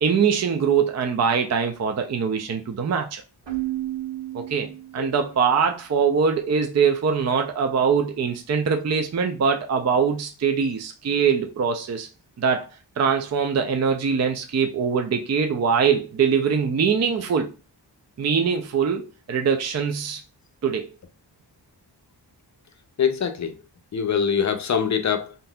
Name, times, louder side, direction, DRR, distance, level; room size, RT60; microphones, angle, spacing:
voice 1, 0.0-3.2 4.3-12.1 12.4-12.7 13.0-17.5 18.2-20.2 20.6-20.9, right 6 dB, 40° right, 0.5 m, -23 dB
Keyboard (musical), 3.5-5.3, right 16 dB, 80° right, 0.9 m, -32 dB
voice 2, 23.0-23.6 23.9-25.3, left 7 dB, 40° left, 0.5 m, -23 dB
3.8 x 2.7 x 2.3 m
wide cardioid pair, 85°, 43 cm